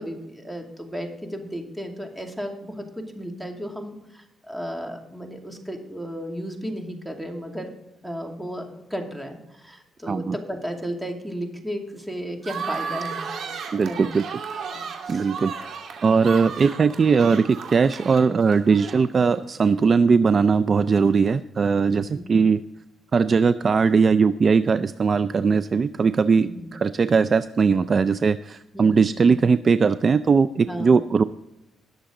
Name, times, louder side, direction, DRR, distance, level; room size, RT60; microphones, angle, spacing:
voice 1, 0.0-7.7 8.0-13.3 13.9-14.2 14.7-15.3 21.9-22.2 26.4-26.7 28.7-29.4 30.7-30.9, equal, 5° right, 2 dB, 2.4 m, -34 dB
sound 1, 12.4-19.3, right 6 dB, 65° right, 2.6 m, -34 dB
voice 2, 13.7-14.2 15.1-15.5 16.0-22.6 23.1-31.2, right 5 dB, 40° right, 13 dB, 0.4 m, -19 dB
20.0 x 7.0 x 3.8 m, 0.89 s
cardioid pair, 90°, 0 cm